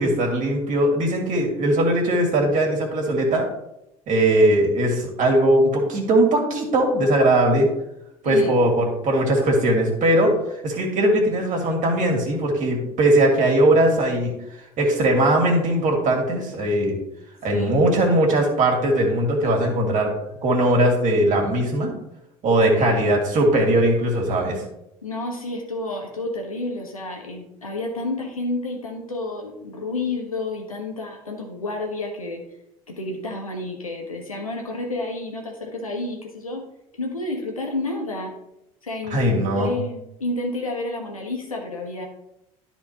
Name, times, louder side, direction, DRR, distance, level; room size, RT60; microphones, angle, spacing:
voice 1, 0.0-3.4 4.1-7.7 8.2-10.3 10.6-14.3 14.8-17.0 17.4-20.1 20.4-21.9 22.4-24.6 39.1-39.7, right 1 dB, 45° right, 0 dB, 2.4 m, -19 dB
voice 2, 8.2-8.6 17.5-17.8 22.8-23.0 25.0-32.4 32.9-36.6 37.0-38.3 38.8-42.1, left 2 dB, 85° left, 1 dB, 1.4 m, -30 dB
12.5 x 4.3 x 3.0 m, 0.84 s
figure-of-eight pair, 60°, 17 cm